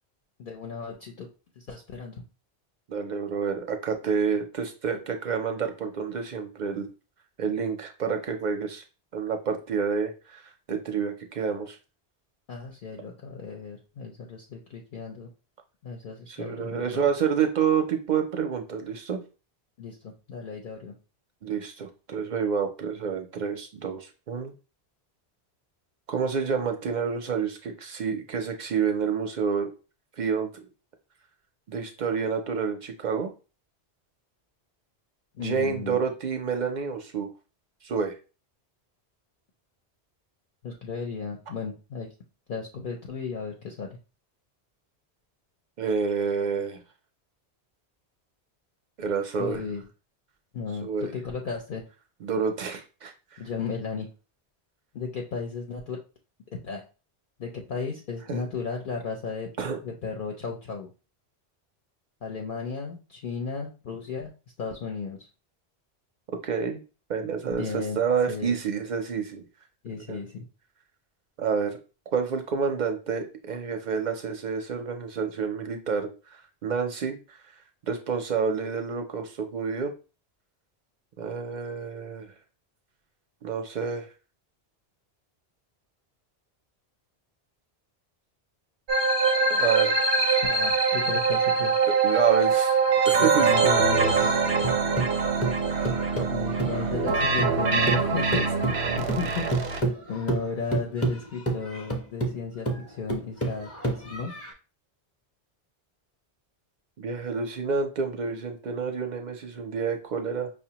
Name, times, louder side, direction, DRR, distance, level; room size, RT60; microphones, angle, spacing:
voice 1, 0.4-1.3 1.6-2.2 12.5-15.3 15.8-17.0 19.8-20.9 35.3-36.0 40.6-42.1 42.5-44.0 49.4-49.8 50.5-51.8 53.4-54.1 54.9-56.0 56.6-56.8 57.4-59.5 59.8-60.9 62.2-64.3 64.6-65.3 67.5-68.0 68.3-68.6 69.8-70.4 90.4-91.7 93.2-94.3 96.3-104.4, left 5 dB, 60° left, 0 dB, 0.7 m, -34 dB
voice 2, 2.9-6.9 7.4-8.8 9.1-11.8 16.3-19.2 21.4-24.5 26.1-29.7 30.2-30.5 31.7-33.3 35.4-37.3 37.8-38.1 45.8-46.8 49.0-49.6 50.8-51.1 52.2-53.1 58.3-58.4 59.6-59.8 66.4-66.8 67.1-69.4 70.1-70.2 71.4-71.8 72.1-76.1 76.6-77.4 77.9-79.9 81.2-82.3 83.4-84.1 89.5-90.0 92.0-92.8 93.1-93.7 107.0-110.5, right 6 dB, 55° right, 5 dB, 0.6 m, -28 dB
sound 1, 88.9-99.8, right 4 dB, 90° right, 0.9 m, -23 dB
sound 2, 94.2-97.6 97.9-104.5, right 2 dB, 20° left, 0.5 m, -30 dB
5.3 x 2.1 x 2.8 m, 0.33 s
omnidirectional pair, 1.1 m